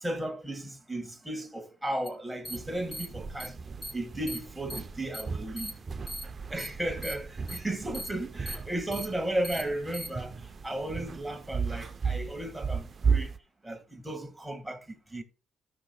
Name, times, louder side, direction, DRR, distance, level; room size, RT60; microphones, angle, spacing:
voice 1, 0.0-3.6 3.9-5.8 6.5-13.3 13.6-15.2, right 1 dB, 5° right, 1.7 m, -35 dB
sound 1, 2.1-2.2 2.4-2.6 2.9-3.0 3.4-3.5 3.8-3.9 4.3-4.4 4.7-4.8 5.1-5.2 5.6-5.7 6.1-6.2 6.6-6.7 7.0-7.1 7.5-7.6 7.9-8.1 8.5-8.6 8.9-9.0 9.4-9.6 9.9-10.1, equal, 20° left, 3.4 m, -38 dB
sound 2, 2.4-13.4, right 5 dB, 40° right, 0.6 m, -35 dB
14.0 x 6.0 x 2.2 m
cardioid pair, 90°, 0 cm